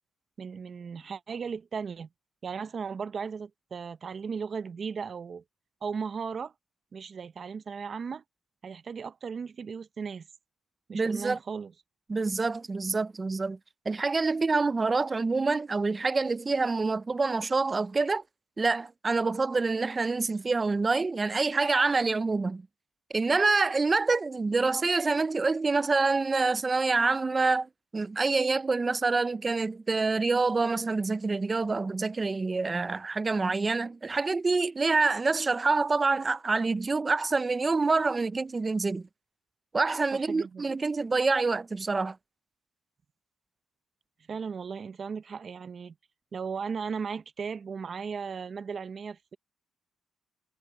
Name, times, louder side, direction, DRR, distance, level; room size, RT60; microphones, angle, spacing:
voice 1, 0.4-2.1 2.4-5.4 5.8-6.5 6.9-8.2 8.6-10.3 10.9-11.7 40.1-40.6 44.3-45.9 46.3-49.4, right 6 dB, 45° right, 0.9 m, -36 dB
voice 2, 10.9-11.4 12.1-13.6 13.9-18.2 18.6-22.6 23.1-39.1 39.7-42.2, right 3 dB, 25° right, 0.6 m, -26 dB
cardioid pair, 90°, 0 cm